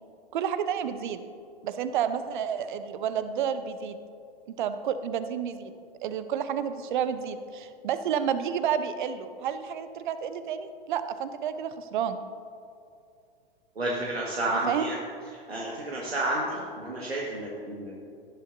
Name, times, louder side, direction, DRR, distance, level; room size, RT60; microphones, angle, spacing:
voice 1, 0.3-1.2 1.6-4.0 4.5-5.7 6.0-12.2 14.5-14.9, right 8 dB, 50° right, 11 dB, 0.9 m, -30 dB
voice 2, 13.8-15.0 15.5-18.0, right 1 dB, 85° right, -4 dB, 1.8 m, -31 dB
18.5 x 10.5 x 2.7 m, 2.4 s
figure-of-eight pair, 105°, 30 cm